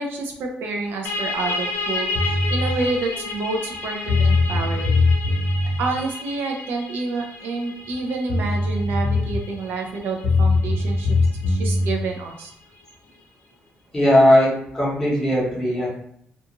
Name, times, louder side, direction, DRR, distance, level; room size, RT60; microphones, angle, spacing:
voice 1, 0.0-5.1 5.8-11.2 11.5-12.5, right 3 dB, 70° right, 2 dB, 0.5 m, -28 dB
sound 1, 1.0-12.4, left 3 dB, 85° left, 0.4 m, -32 dB
sound 2, 2.1-2.7 3.7-3.8 4.1-5.8 7.9-8.0 8.3-9.5 10.2-11.9, left 3 dB, 50° left, 0.9 m, -20 dB
voice 2, 13.9-15.9, left 1 dB, 10° left, -5 dB, 0.8 m, -18 dB
2.4 x 2.4 x 2.8 m, 0.68 s
cardioid pair, 180°, 4 cm